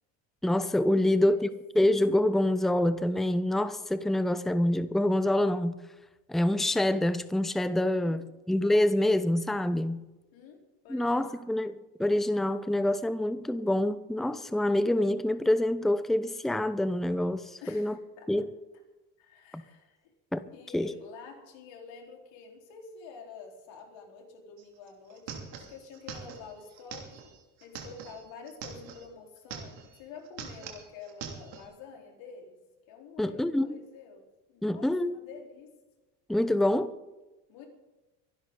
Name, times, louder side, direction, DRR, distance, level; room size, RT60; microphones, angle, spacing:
voice 1, 0.4-1.5 1.7-5.7 6.3-10.1 10.9-18.0 18.3-18.5 20.3-20.4 20.7-20.9 33.2-33.7 34.6-35.2 36.3-36.9, left 1 dB, ahead, 0.8 m, -26 dB
voice 2, 0.9-1.5 8.0-8.6 10.3-10.6 10.8-11.5 17.6-18.3 19.2-20.1 20.5-27.3 27.6-32.6 32.9-35.7 37.5-37.7, left 5 dB, 65° left, 4.5 m, -48 dB
sound 1, 24.6-24.7 24.9-29.0 29.4-30.0 30.2-31.6, right 7 dB, 85° right, 2.9 m, -43 dB
24.0 x 11.5 x 4.0 m
hypercardioid pair, 70°, 49 cm